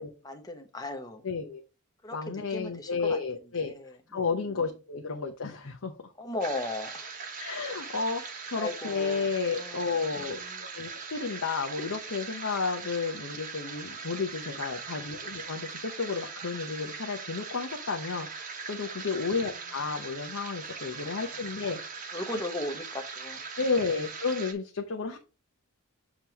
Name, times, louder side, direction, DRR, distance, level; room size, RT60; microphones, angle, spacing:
voice 1, 0.0-1.2 2.0-3.2 3.6-4.6 6.2-7.1 8.5-9.3 9.6-9.8 10.2-10.7 21.2-21.4 22.1-23.4, left 1 dB, 15° left, 5 dB, 0.9 m, -37 dB
voice 2, 1.2-1.6 2.1-3.7 4.1-6.1 7.4-8.2 8.5-10.4 10.7-22.0 22.3-22.4 23.6-25.2, left 4 dB, 70° left, 2 dB, 0.8 m, -32 dB
sound 1, 6.4-24.5, right 5 dB, 35° right, 0.9 m, -40 dB
7.4 x 3.0 x 4.8 m, 0.31 s
head